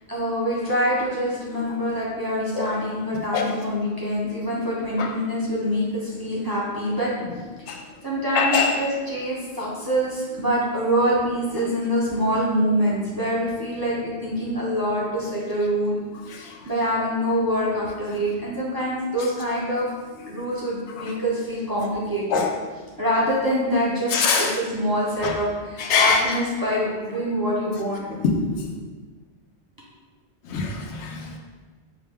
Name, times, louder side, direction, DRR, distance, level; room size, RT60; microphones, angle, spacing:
voice 1, 0.1-7.1 8.0-16.0 16.3-19.9 20.3-22.4 23.0-28.1, equal, 25° right, -6 dB, 0.5 m, -25 dB
voice 2, 8.3-8.7 22.3-22.5 24.1-24.5 25.2-25.3 25.8-26.2 28.2-28.6 30.5-31.4, left 5 dB, 85° left, 2 dB, 0.9 m, -22 dB
4.7 x 2.2 x 3.5 m, 1.4 s
omnidirectional pair, 1.1 m